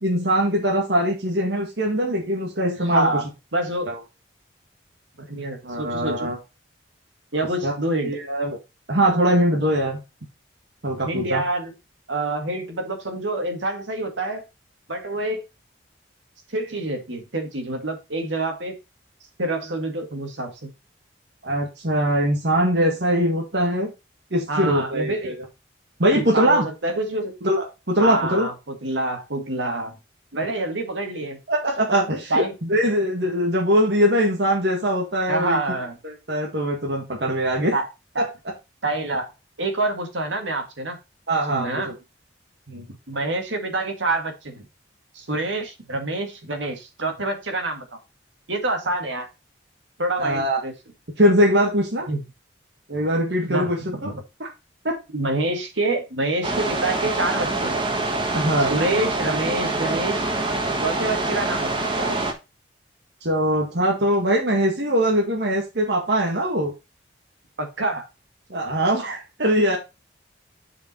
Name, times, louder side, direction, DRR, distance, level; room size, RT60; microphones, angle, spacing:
voice 1, 0.0-3.1 3.9-4.0 5.6-6.4 7.6-7.7 8.0-8.6 8.9-10.0 10.8-11.4 21.4-23.9 24.3-25.3 26.0-26.6 27.4-28.5 31.5-35.6 36.0-37.7 38.2-38.3 41.3-41.9 42.7-42.9 50.2-50.6 51.2-52.1 52.9-54.1 54.4-54.5 54.8-55.0 58.3-58.8 63.2-66.7 68.5-69.8, equal, 65° right, 1.9 m, -22 dB
voice 2, 2.8-3.2 3.5-3.9 5.3-6.3 7.3-8.2 11.0-11.7 12.1-14.4 14.9-15.4 16.5-18.7 19.4-20.7 24.5-25.4 26.1-27.3 28.0-30.0 30.3-31.4 32.3-32.5 35.3-36.0 37.7-37.9 38.2-38.3 38.8-39.3 39.6-41.0 41.5-41.9 43.1-44.6 45.1-48.0 48.5-49.3 50.0-50.7 52.1-52.2 53.5-54.2 55.1-57.8 58.7-60.3 60.8-62.3 67.6-68.0, right 2 dB, 90° right, 2.0 m, -27 dB
sound 1, 56.4-62.3, right 2 dB, 25° right, 1.4 m, -25 dB
7.1 x 5.3 x 4.4 m
head